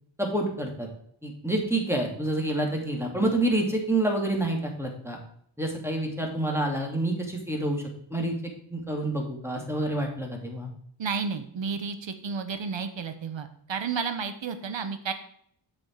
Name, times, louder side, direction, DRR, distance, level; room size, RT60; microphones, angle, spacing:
voice 1, 0.2-0.9 1.2-5.2 5.6-7.8 8.1-8.3 8.7-10.7, right 1 dB, 5° right, 1 dB, 2.6 m, -28 dB
voice 2, 11.0-15.1, right 5 dB, 70° right, 9 dB, 1.2 m, -32 dB
7.5 x 6.3 x 4.7 m, 0.67 s
cardioid pair, 65°, 47 cm